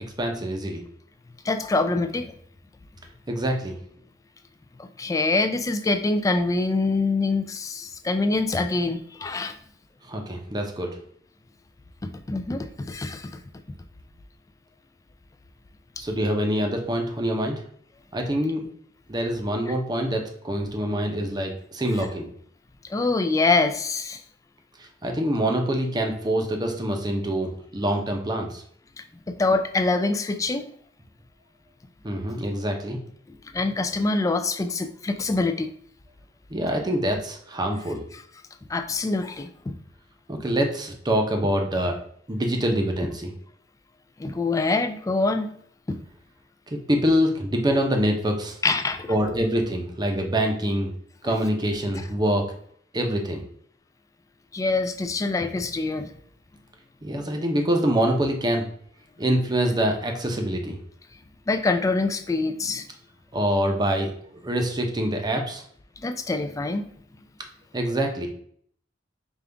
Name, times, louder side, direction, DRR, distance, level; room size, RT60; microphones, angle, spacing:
voice 1, 0.2-0.8 3.3-3.8 10.1-10.9 16.0-17.6 18.1-18.6 19.1-22.3 25.0-28.6 32.0-33.0 36.5-38.0 40.3-42.0 42.3-43.3 46.9-48.6 49.1-50.9 51.2-52.4 52.9-53.4 57.0-58.7 59.2-60.8 63.3-64.2 64.4-65.6 67.7-68.3, equal, 20° right, 3 dB, 0.7 m, -25 dB
voice 2, 1.4-2.3 4.8-9.6 12.0-13.4 19.7-19.8 22.9-24.2 29.0-30.7 33.3-35.7 38.1-38.2 38.7-39.8 44.2-45.5 45.9-46.0 48.6-49.1 51.2-51.3 54.5-56.1 61.5-62.9 66.0-66.9, left 3 dB, 20° left, 8 dB, 0.3 m, -25 dB
5.2 x 2.4 x 3.3 m, 0.62 s
head